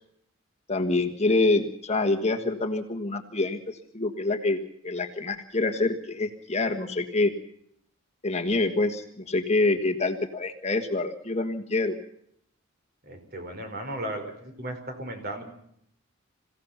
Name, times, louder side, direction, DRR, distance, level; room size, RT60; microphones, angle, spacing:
voice 1, 0.7-4.6 4.8-7.3 8.2-12.0, left 2 dB, 30° left, 6 dB, 1.5 m, -26 dB
voice 2, 13.1-15.4, right 1 dB, 45° right, 6 dB, 4.6 m, -35 dB
27.5 x 16.5 x 5.8 m, 0.71 s
head